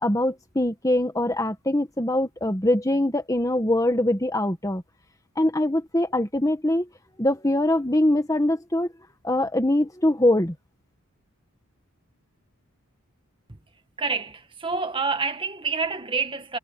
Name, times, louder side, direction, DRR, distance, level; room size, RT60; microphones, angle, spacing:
voice 1, 0.0-4.8 5.3-6.9 7.2-8.9 9.2-10.5, left 1 dB, 15° left, 1.7 m, -23 dB
voice 2, 14.0-16.6, right 4 dB, 25° right, 1.9 m, -27 dB
head